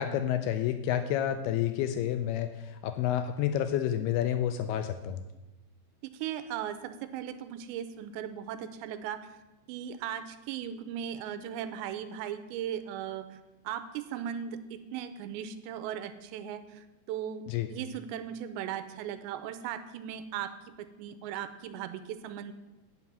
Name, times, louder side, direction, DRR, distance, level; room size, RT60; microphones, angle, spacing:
voice 1, 0.0-5.2 17.5-17.7, left 10 dB, 90° left, 9 dB, 2.2 m, -29 dB
voice 2, 6.0-9.3 9.7-13.4 13.6-17.4 17.7-20.5 20.8-22.5, right 9 dB, 85° right, 11 dB, 2.8 m, -38 dB
9.7 x 6.0 x 8.5 m, 1.1 s
omnidirectional pair, 5.1 m